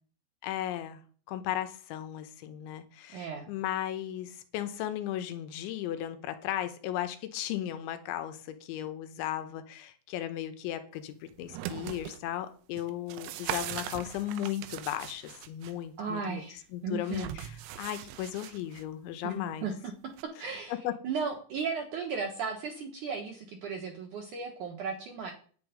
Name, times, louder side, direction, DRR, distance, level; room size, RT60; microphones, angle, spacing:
voice 1, 0.4-1.0 1.3-16.4 16.7-17.5 17.8-19.7 20.7-20.9, left 12 dB, 85° left, 10 dB, 3.4 m, -36 dB
voice 2, 3.1-3.5 16.0-17.3 19.2-19.9 20.2-20.7 21.0-25.3, right 5 dB, 65° right, 3 dB, 2.0 m, -35 dB
sound 1, 11.3-12.2 12.8-15.7 17.1-18.8 20.2-20.3, right 12 dB, 90° right, 3.2 m, -40 dB
10.5 x 9.1 x 5.1 m, 0.44 s
omnidirectional pair, 5.3 m